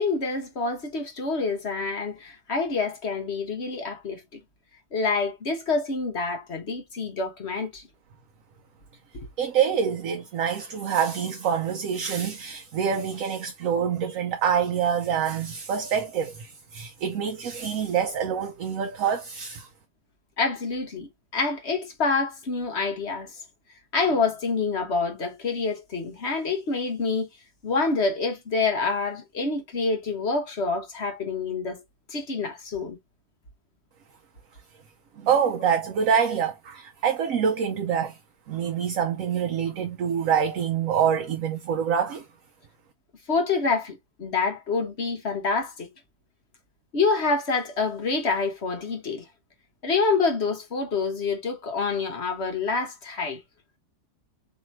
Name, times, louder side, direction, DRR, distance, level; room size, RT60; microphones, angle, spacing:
voice 1, 0.0-4.2 4.9-7.8 9.1-9.3 20.4-23.4 23.9-27.3 27.6-31.8 32.1-33.0 43.3-45.9 46.9-49.2 49.8-53.4, left 4 dB, 45° left, 1.2 m, -27 dB
voice 2, 9.4-19.7 35.2-38.2 38.5-42.2, right 7 dB, 65° right, 1.0 m, -26 dB
3.3 x 2.9 x 4.3 m
omnidirectional pair, 1.7 m